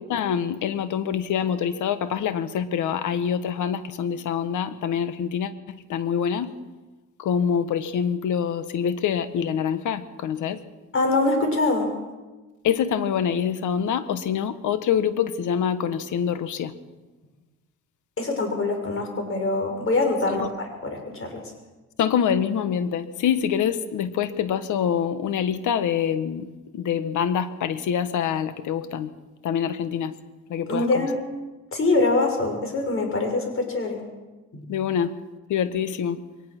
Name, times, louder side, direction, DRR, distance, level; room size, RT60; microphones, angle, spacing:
voice 1, 0.0-6.5 7.2-10.6 12.6-16.7 20.3-20.5 22.0-29.1 29.4-30.1 30.5-31.1 34.7-35.1 35.5-36.2, left 8 dB, 80° left, 12 dB, 1.5 m, -25 dB
voice 2, 10.9-11.9 18.2-21.4 30.7-31.2 31.7-34.0 34.5-34.7, left 2 dB, 45° left, 4 dB, 6.4 m, -24 dB
22.5 x 19.0 x 6.2 m, 1.2 s
cardioid pair, 90°, 30 cm